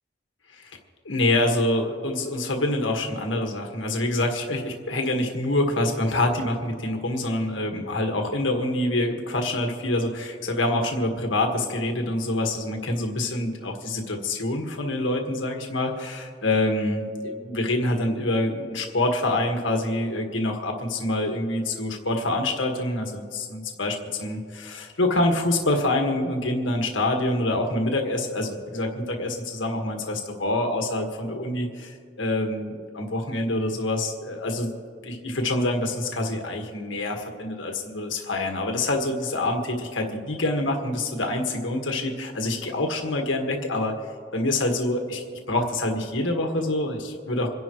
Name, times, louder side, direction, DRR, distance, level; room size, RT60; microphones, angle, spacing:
voice 1, 1.1-34.7 35.0-44.0 44.3-47.5, left 1 dB, 90° left, 3 dB, 1.7 m, -26 dB
27.0 x 11.0 x 3.1 m, 2.1 s
head